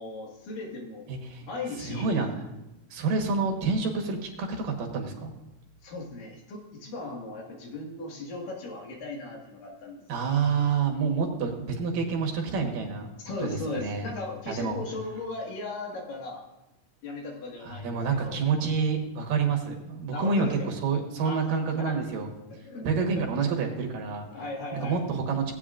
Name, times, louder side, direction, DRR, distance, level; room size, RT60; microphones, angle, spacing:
voice 1, 0.0-1.1 1.4-2.2 5.8-10.2 13.2-16.4 17.0-18.4 20.1-20.7 21.2-21.5 21.8-22.0 22.5-22.9 23.2-23.3 23.6-23.8 24.1-25.0, left 2 dB, 85° left, -1 dB, 3.5 m, -37 dB
voice 2, 1.1-1.4 1.8-2.3 2.9-5.3 10.1-13.1 13.4-14.1 14.5-14.8 17.6-22.3 22.8-24.3 24.7-25.6, right 5 dB, 90° right, 2 dB, 3.0 m, -28 dB
17.5 x 8.8 x 2.5 m, 0.97 s
omnidirectional pair, 3.8 m